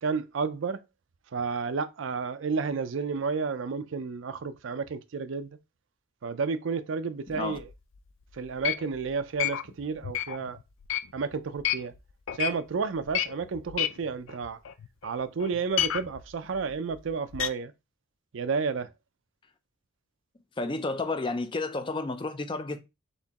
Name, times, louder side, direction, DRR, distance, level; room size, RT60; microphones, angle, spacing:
voice 1, 0.0-0.8 1.3-5.5 6.2-7.7 8.3-10.6 11.1-11.9 12.3-14.6 15.0-17.7 18.3-18.9, right 5 dB, 75° right, 0.4 m, -31 dB
sound 1, 7.3-8.0 8.4-12.0 12.3-12.6 13.0-15.1 15.4-17.5, left 11 dB, 85° left, 0.4 m, -31 dB
voice 2, 20.6-22.8, left 3 dB, 25° left, 0.4 m, -31 dB
4.2 x 3.8 x 2.8 m
head